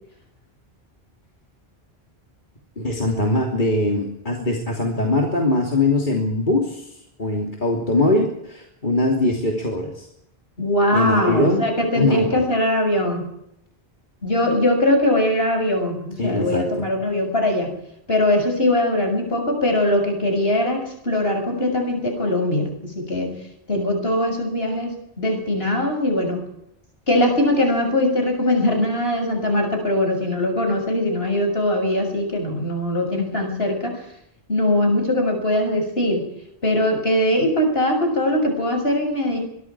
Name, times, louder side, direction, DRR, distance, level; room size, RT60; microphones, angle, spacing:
voice 1, 2.8-10.1 10.9-11.6 11.9-12.4 16.2-16.9, left 2 dB, 50° left, 0 dB, 3.3 m, -22 dB
voice 2, 10.6-13.3 14.2-17.7 18.1-23.4 23.7-26.4 27.1-34.0 34.5-36.2 36.6-39.4, left 1 dB, 70° left, 4 dB, 7.1 m, -21 dB
26.5 x 23.5 x 4.8 m, 0.79 s
omnidirectional pair, 1.1 m